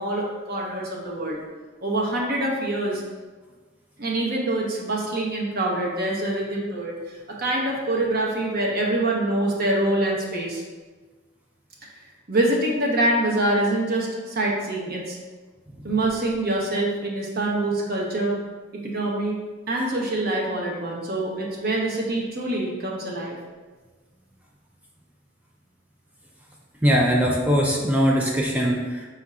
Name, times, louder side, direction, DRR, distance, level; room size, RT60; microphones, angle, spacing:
voice 1, 0.0-1.4 1.8-3.0 4.0-10.6 12.3-15.2 15.8-18.4 18.8-19.4 19.7-23.4, right 1 dB, 50° right, -2 dB, 0.8 m, -25 dB
voice 2, 26.8-29.0, equal, 10° right, -2 dB, 0.4 m, -21 dB
4.3 x 2.4 x 4.2 m, 1.4 s
head